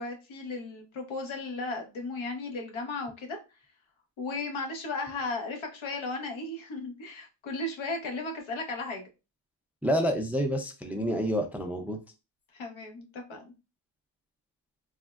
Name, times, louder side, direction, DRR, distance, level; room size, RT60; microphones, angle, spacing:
voice 1, 0.0-3.4 4.2-9.1 12.5-13.5, left 3 dB, 75° left, 3 dB, 0.9 m, -35 dB
voice 2, 9.8-12.0, equal, 5° right, 5 dB, 0.4 m, -28 dB
3.4 x 2.1 x 2.3 m, 0.29 s
cardioid pair, 80°, 48 cm